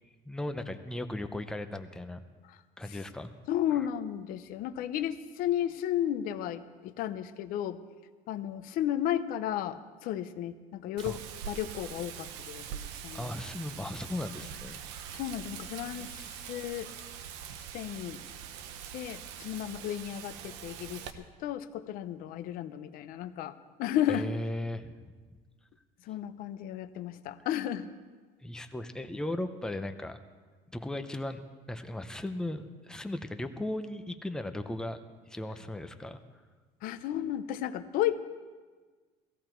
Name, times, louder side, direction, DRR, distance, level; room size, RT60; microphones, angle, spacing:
voice 1, 0.3-2.2 2.8-3.3 3.7-3.9 11.0-11.2 13.1-14.8 15.9-16.1 24.1-25.1 28.4-30.2 30.7-35.0 35.3-36.2, left 1 dB, 5° left, 8 dB, 0.6 m, -37 dB
voice 2, 3.5-7.8 8.3-11.2 11.5-13.3 15.1-16.9 17.7-18.2 18.9-24.3 26.1-27.9 36.8-38.2, left 11 dB, 55° left, 12 dB, 0.7 m, -33 dB
Wind, 11.0-21.1, right 8 dB, 90° right, 1.0 m, -43 dB
17.0 x 15.5 x 4.5 m, 1.4 s
cardioid pair, 170°, 18 cm